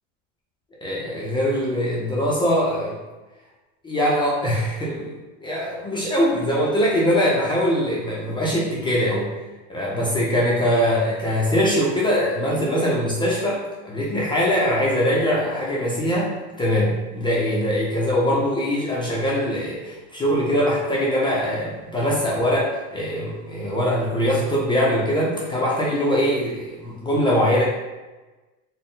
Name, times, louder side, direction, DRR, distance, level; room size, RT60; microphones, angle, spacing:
voice 1, 0.8-3.0 3.8-5.2 5.4-9.3 9.7-16.3 16.6-27.6, equal, 15° left, -5 dB, 0.4 m, -22 dB
4.1 x 2.0 x 3.7 m, 1.2 s
cardioid pair, 150°, 37 cm